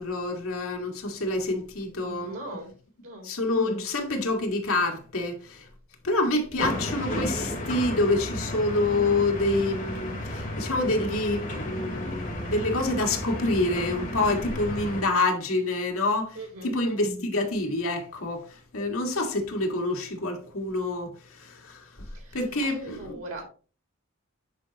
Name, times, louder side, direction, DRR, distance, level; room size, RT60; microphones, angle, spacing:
voice 1, 0.0-2.3 3.2-5.7 6.0-22.0 22.3-23.2, left 2 dB, 80° left, 1.8 m, -27 dB
voice 2, 2.0-2.7 3.0-3.3 16.4-16.7 22.1-22.4 22.6-23.4, right 1 dB, 80° right, 3.6 m, -39 dB
sound 1, 6.6-15.0, left 1 dB, 40° left, 2.7 m, -33 dB
9.5 x 5.0 x 2.9 m
head